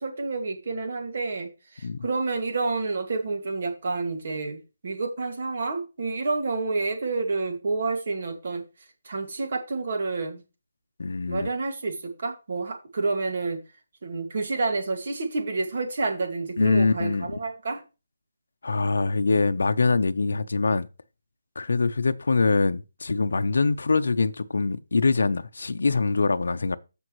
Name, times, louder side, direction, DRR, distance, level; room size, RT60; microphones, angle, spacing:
voice 1, 0.0-8.6 9.1-10.4 11.3-13.6 14.0-17.8, right 3 dB, 45° right, 2.1 m, -29 dB
voice 2, 11.0-11.5 16.6-17.4 18.6-20.9 21.6-26.8, left 3 dB, 75° left, 0.7 m, -24 dB
14.0 x 5.2 x 3.1 m
hypercardioid pair, 170°, 0 cm